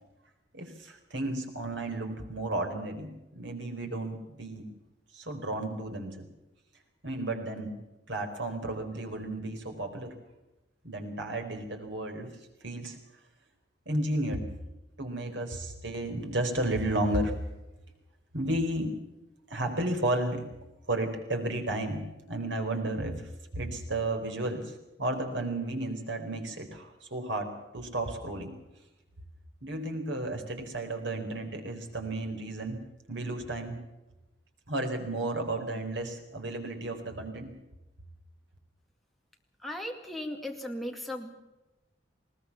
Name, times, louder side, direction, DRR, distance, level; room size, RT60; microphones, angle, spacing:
voice 1, 0.5-4.7 5.1-6.2 7.0-7.7 8.1-10.1 10.8-12.4 12.6-13.0 13.9-14.5 15.0-17.4 18.3-19.0 19.5-20.5 20.9-28.5 29.6-33.8 34.7-37.5, right 1 dB, 80° right, 5 dB, 4.1 m, -33 dB
voice 2, 39.6-41.3, left 1 dB, ahead, 1 dB, 2.2 m, -37 dB
20.5 x 19.0 x 7.2 m, 1.0 s
head